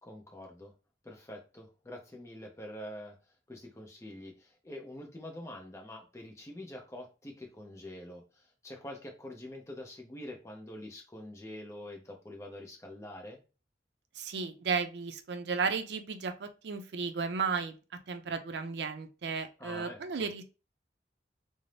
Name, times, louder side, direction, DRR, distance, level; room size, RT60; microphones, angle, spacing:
voice 1, 0.0-0.7 1.0-13.4 19.6-20.3, left 1 dB, 15° left, 2 dB, 0.5 m, -46 dB
voice 2, 14.2-17.8 18.1-20.4, right 5 dB, 75° right, 8 dB, 0.4 m, -34 dB
2.5 x 2.0 x 3.1 m, 0.32 s
head